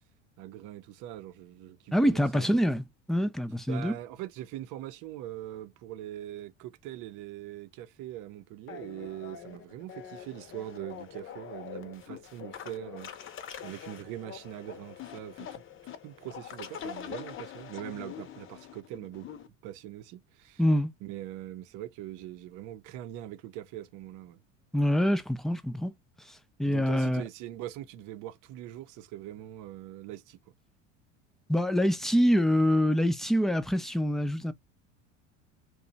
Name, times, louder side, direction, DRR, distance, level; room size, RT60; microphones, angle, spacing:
voice 1, 0.4-2.6 3.7-15.6 16.0-19.3 19.6-20.6 21.0-24.4 26.6-30.4, right 13 dB, 55° right, 0.7 m, -42 dB
voice 2, 1.9-3.9 20.6-20.9 24.7-25.9 26.3-27.2 31.5-34.5, equal, ahead, 0.5 m, -25 dB
sound 1, 8.7-19.5, left 9 dB, 35° left, 0.7 m, -44 dB
2.9 x 2.3 x 4.0 m
hypercardioid pair, 75°, 38 cm